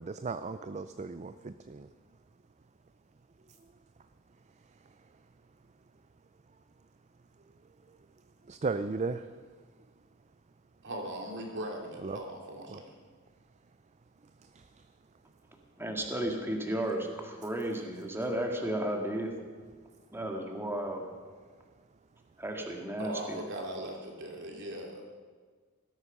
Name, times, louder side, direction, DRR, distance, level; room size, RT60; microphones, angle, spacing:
voice 1, 0.0-1.9 8.5-9.2 12.0-12.2 12.7-12.8, right 4 dB, 35° right, 11 dB, 0.5 m, -35 dB
voice 2, 10.8-12.9 23.0-25.0, right 1 dB, 55° right, 1 dB, 3.1 m, -39 dB
voice 3, 15.8-19.3 20.1-21.1 22.4-23.4, right 1 dB, 10° right, 2 dB, 1.9 m, -33 dB
18.5 x 13.0 x 6.0 m, 1.5 s
head